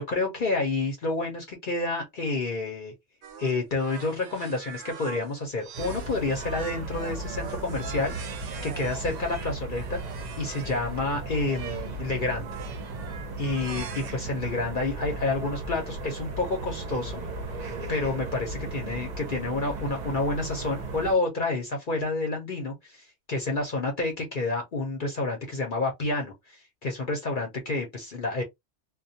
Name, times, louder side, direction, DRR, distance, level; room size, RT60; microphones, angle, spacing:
voice 1, 0.0-2.9 3.4-10.0 10.4-12.5 13.4-17.2 17.9-28.4, left 3 dB, 50° left, 0.8 m, -29 dB
sound 1, 3.2-10.8 11.4-12.0 12.4-14.1, right 7 dB, 85° right, 0.9 m, -42 dB
sound 2, 5.7-21.1, right 2 dB, 45° right, 0.7 m, -36 dB
2.2 x 2.2 x 2.7 m
omnidirectional pair, 1.3 m